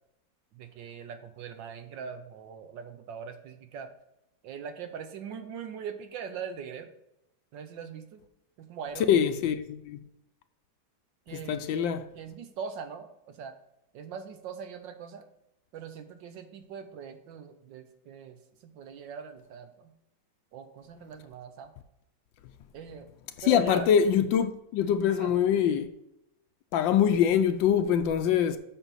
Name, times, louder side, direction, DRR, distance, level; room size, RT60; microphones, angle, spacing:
voice 1, 0.5-3.9 4.4-6.9 7.5-8.2 8.6-9.2 11.3-13.5 13.9-15.3 15.7-19.9 20.5-21.7 22.7-23.1 23.4-23.9 25.2-25.3, right 6 dB, 70° right, 1.4 m, -41 dB
voice 2, 9.1-10.0 11.3-12.0 23.5-25.9 26.7-28.6, left 8 dB, 75° left, 1.3 m, -24 dB
8.0 x 6.0 x 4.0 m
omnidirectional pair, 2.2 m